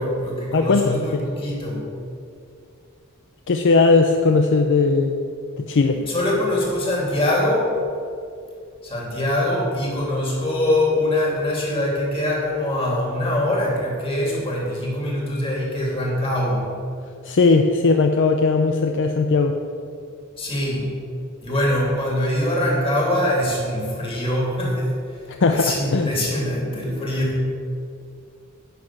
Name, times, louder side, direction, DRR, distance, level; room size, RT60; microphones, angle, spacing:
voice 1, 0.0-1.8 5.9-7.7 8.8-16.7 20.4-20.9 21.4-24.9 25.5-27.4, left 1 dB, 25° left, -3 dB, 2.8 m, -23 dB
voice 2, 0.5-1.0 3.5-5.2 5.6-6.0 17.2-19.5 25.3-26.1, left 4 dB, 55° left, 5 dB, 0.5 m, -18 dB
10.0 x 5.9 x 7.6 m, 2.4 s
head